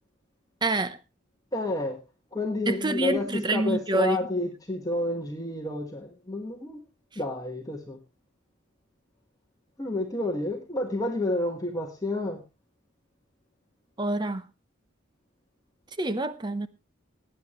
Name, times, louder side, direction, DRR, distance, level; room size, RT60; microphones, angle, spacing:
voice 1, 0.6-1.0 2.7-4.2 14.0-14.5 16.0-16.7, right 2 dB, 25° right, 0.8 m, -26 dB
voice 2, 1.5-2.0 2.3-6.8 7.1-8.0 9.8-12.4, left 2 dB, 20° left, 1.4 m, -30 dB
19.0 x 9.1 x 3.1 m
head